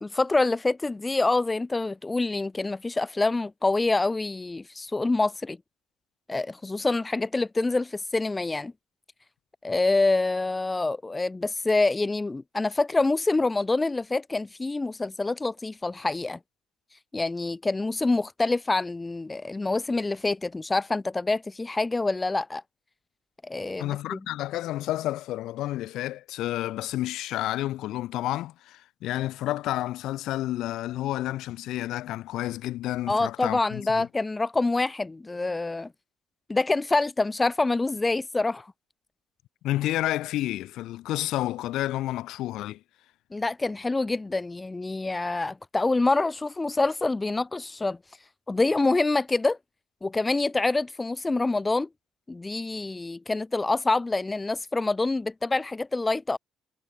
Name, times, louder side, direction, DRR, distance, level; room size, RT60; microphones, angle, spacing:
voice 1, 0.0-5.6 6.3-8.7 9.6-16.4 17.1-22.6 23.4-24.2 33.1-35.9 36.5-38.7 43.3-48.0 48.5-49.6 50.0-51.9 52.3-56.4, left 3 dB, 15° left, 0.3 m, -26 dB
voice 2, 23.8-34.1 39.6-42.8, left 15 dB, 80° left, 1.4 m, -30 dB
cardioid pair, 125°, 0 cm